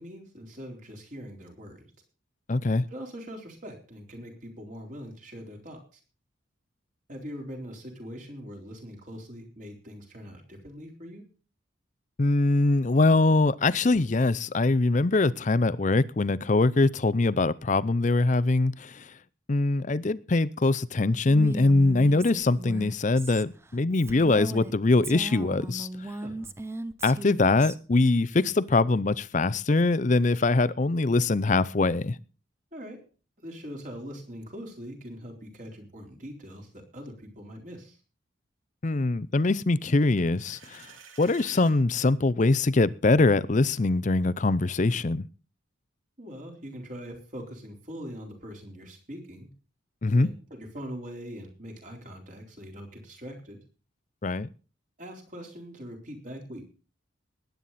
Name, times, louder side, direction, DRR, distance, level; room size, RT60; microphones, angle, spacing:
voice 1, 0.0-1.9 2.9-6.0 7.1-11.2 26.2-26.5 32.7-33.0 33.4-38.0 46.2-49.5 50.1-53.6 55.0-56.6, equal, 40° right, 4.0 m, -42 dB
voice 2, 2.5-2.9 12.2-19.0 19.5-25.9 27.0-32.2 38.8-40.8 41.2-45.2 50.0-50.3 54.2-54.5, left 2 dB, 40° left, 0.5 m, -23 dB
Female speech woman speaking, 21.3-24.7 25.0-27.8, right 2 dB, 15° right, 0.6 m, -37 dB
sound 1, 40.2-41.8, right 6 dB, 85° right, 2.3 m, -50 dB
20.0 x 9.3 x 4.2 m
head